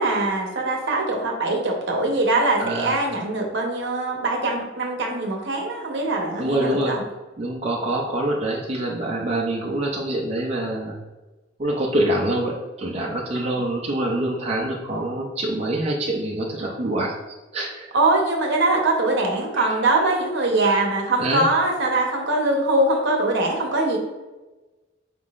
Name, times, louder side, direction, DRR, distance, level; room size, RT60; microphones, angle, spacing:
voice 1, 0.0-7.0 13.3-13.5 17.9-24.0, right 2 dB, 65° right, 1 dB, 0.9 m, -22 dB
voice 2, 2.6-3.1 6.4-6.9 7.4-11.0 11.6-17.1 17.5-17.9 19.6-19.8 20.6-20.7 21.2-21.5, right 1 dB, 35° right, -2 dB, 0.5 m, -25 dB
4.8 x 3.7 x 2.4 m, 1.2 s
head